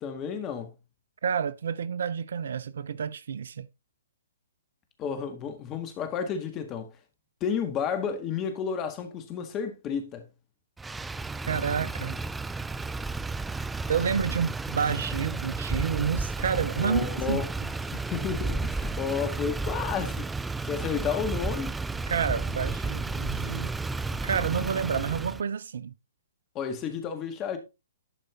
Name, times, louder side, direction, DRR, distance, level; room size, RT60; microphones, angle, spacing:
voice 1, 0.0-0.7 5.0-6.9 7.4-10.3 16.8-17.5 17.9-20.3 20.6-21.8 26.6-27.6, left 7 dB, 25° left, 1.7 m, -31 dB
voice 2, 1.2-3.7 11.5-12.2 13.9-17.7 22.1-23.7 24.1-25.9, right 7 dB, 65° right, 0.6 m, -29 dB
Motor vehicle (road), 10.8-25.4, right 3 dB, 5° right, 0.3 m, -32 dB
11.5 x 5.0 x 3.8 m
figure-of-eight pair, 125°, 0 cm